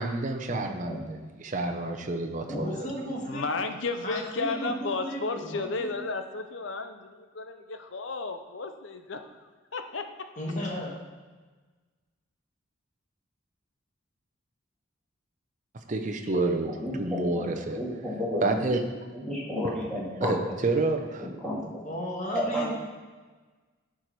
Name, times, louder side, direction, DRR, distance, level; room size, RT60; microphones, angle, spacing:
voice 1, 0.0-3.1 15.9-16.7 17.0-17.8 18.4-19.0 19.6-19.7 20.2-21.3, right 2 dB, 40° right, 4 dB, 0.6 m, -29 dB
voice 2, 2.4-3.5 4.0-6.0 10.4-10.9 21.8-22.7, equal, 40° left, -1 dB, 1.6 m, -34 dB
voice 3, 3.2-10.1, left 3 dB, 65° left, 7 dB, 0.7 m, -33 dB
voice 4, 16.7-18.6 19.1-20.3 21.2-21.5 22.3-22.7, left 1 dB, 5° left, -8 dB, 2.5 m, -32 dB
10.5 x 4.8 x 4.6 m, 1.3 s
head